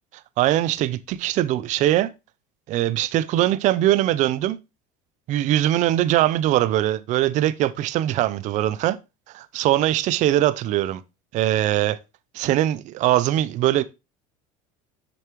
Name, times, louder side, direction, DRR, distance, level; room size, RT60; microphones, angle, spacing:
voice 1, 0.4-2.1 2.7-4.6 5.3-9.0 9.3-11.0 11.3-12.0 12.3-13.8, right 13 dB, 45° right, 0.6 m, -21 dB
7.0 x 6.8 x 3.0 m
supercardioid pair, 125°, 17 cm